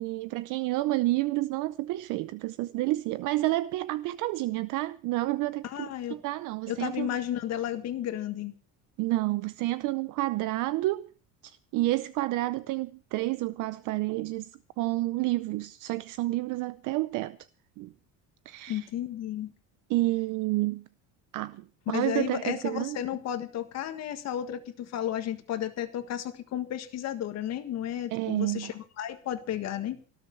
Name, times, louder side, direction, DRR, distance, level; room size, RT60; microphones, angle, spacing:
voice 1, 0.0-7.2 9.0-11.1 11.4-17.4 17.8-17.9 18.5-18.9 19.9-20.8 21.3-23.0 28.1-28.7, right 18 dB, 60° right, 0.7 m, -30 dB
voice 2, 5.6-6.2 6.7-8.5 18.7-19.5 21.9-30.0, left 11 dB, 45° left, 1.6 m, -33 dB
18.5 x 6.9 x 8.5 m
cardioid pair, 170°, 35 cm